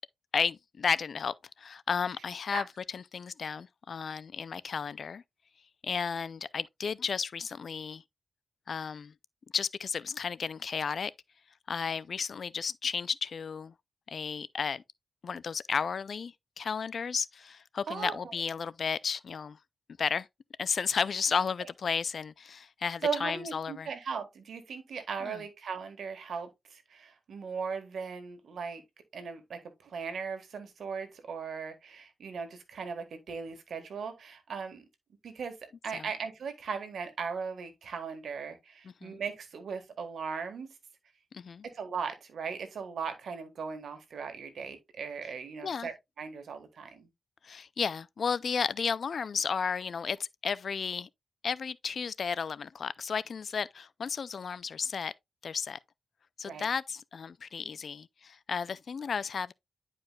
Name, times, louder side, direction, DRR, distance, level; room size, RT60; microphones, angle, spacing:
voice 1, 0.3-2.6 2.9-5.2 5.8-8.0 8.7-9.1 9.5-11.1 11.7-13.7 14.1-14.8 15.2-19.6 20.0-20.3 20.6-23.9 25.2-25.4 35.9-36.1 38.8-39.2 41.3-41.6 45.6-45.9 47.4-51.1 51.4-55.1 55.4-55.8 56.4-59.5, left 6 dB, 60° left, 0.4 m, -33 dB
voice 2, 17.9-18.3 23.0-28.8 29.1-34.8 35.2-35.6 35.8-40.8 41.7-47.1 56.4-56.7, right 5 dB, 80° right, 1.6 m, -38 dB
10.5 x 4.9 x 2.3 m
wide cardioid pair, 100°, 0 cm